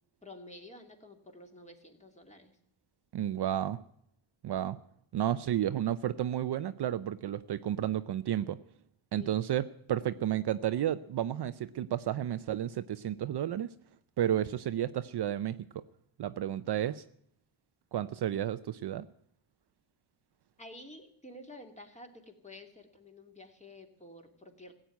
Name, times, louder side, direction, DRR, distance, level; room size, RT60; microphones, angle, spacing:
voice 1, 0.2-2.6 9.1-9.3 20.6-24.7, left 1 dB, 15° left, 4 dB, 2.4 m, -50 dB
voice 2, 3.1-3.8 4.4-4.8 5.1-8.6 9.1-13.7 14.2-15.6 16.2-17.0 17.9-19.0, right 11 dB, 55° right, 12 dB, 0.6 m, -32 dB
16.0 x 8.9 x 9.2 m, 0.70 s
cardioid pair, 135°, 50 cm